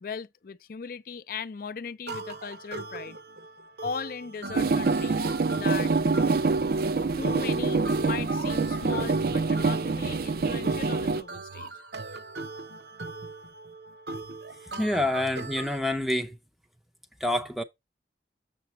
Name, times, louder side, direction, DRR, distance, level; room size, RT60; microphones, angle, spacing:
voice 1, 0.0-3.2 3.8-5.2 5.5-5.9 7.2-11.7, left 5 dB, 50° left, 0.4 m, -38 dB
sound 1, 2.1-15.8, right 3 dB, 70° right, 0.8 m, -40 dB
sound 2, 4.5-11.2, right 4 dB, 55° right, 0.4 m, -25 dB
voice 2, 14.8-16.4 17.2-17.6, left 1 dB, ahead, 0.5 m, -27 dB
6.9 x 6.7 x 3.0 m
head